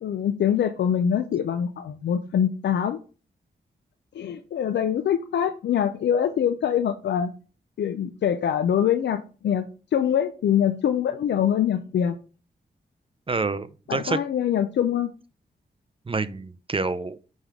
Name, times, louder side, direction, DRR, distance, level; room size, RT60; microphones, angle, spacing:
voice 1, 0.0-3.0 4.1-7.3 7.8-12.2 13.9-15.1, left 9 dB, 80° left, 0.5 m, -24 dB
voice 2, 13.3-14.2 16.1-17.2, right 3 dB, 30° right, 0.6 m, -27 dB
9.0 x 3.5 x 3.6 m
cardioid pair, 55°, 18 cm